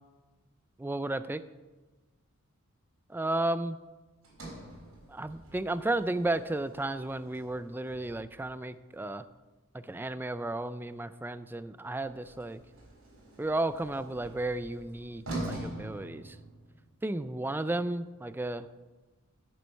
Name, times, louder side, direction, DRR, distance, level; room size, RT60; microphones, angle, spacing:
voice 1, 0.8-1.4 3.1-3.8 5.1-9.3 9.7-12.6 13.4-16.4 17.0-18.7, right 2 dB, 10° right, 13 dB, 0.3 m, -33 dB
Sliding door, 4.2-8.5 12.0-16.9, right 1 dB, 80° right, 3.7 m, -44 dB
10.0 x 7.7 x 5.4 m, 1.2 s
head